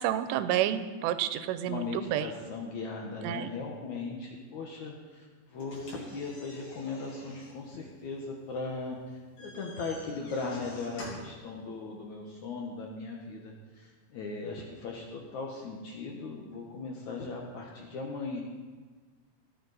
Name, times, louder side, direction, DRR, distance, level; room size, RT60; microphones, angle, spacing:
voice 1, 0.0-2.3 3.2-3.5, right 11 dB, 90° right, 11 dB, 2.8 m, -30 dB
voice 2, 1.6-18.4, left 3 dB, 75° left, 0 dB, 1.8 m, -38 dB
sound 1, 5.6-11.4, left 1 dB, 50° left, 4.5 m, -49 dB
16.5 x 10.5 x 4.1 m, 1.4 s
omnidirectional pair, 4.9 m